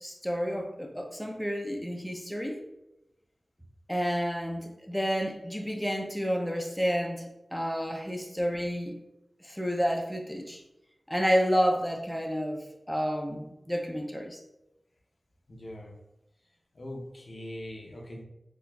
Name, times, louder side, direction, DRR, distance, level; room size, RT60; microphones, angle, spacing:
voice 1, 0.0-2.6 3.9-7.3 7.5-9.0 9.4-10.6 11.1-14.4, equal, 5° left, 1 dB, 0.4 m, -30 dB
voice 2, 15.5-15.9 16.7-18.2, left 1 dB, 60° left, 1 dB, 0.5 m, -41 dB
4.1 x 2.3 x 2.2 m, 0.90 s
wide cardioid pair, 80°, 0 cm